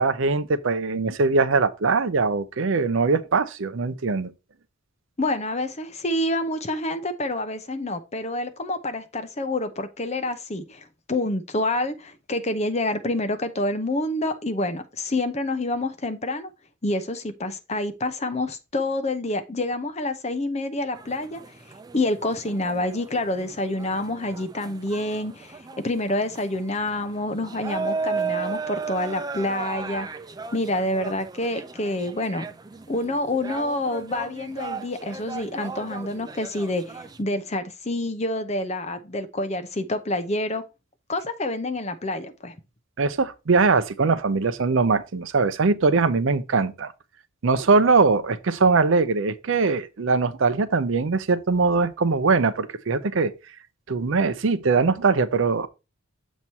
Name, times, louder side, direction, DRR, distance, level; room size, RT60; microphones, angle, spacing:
voice 1, 0.0-4.3 43.0-46.9 47.4-53.3 53.9-55.7, right 4 dB, 65° right, 0.5 m, -21 dB
voice 2, 5.2-16.5 16.8-21.4 21.9-30.1 30.5-32.5 32.9-40.6 41.1-42.6, left 1 dB, 30° left, 0.7 m, -27 dB
sound 1, 20.9-37.2, right 4 dB, 20° right, 0.3 m, -36 dB
7.2 x 3.1 x 5.4 m
head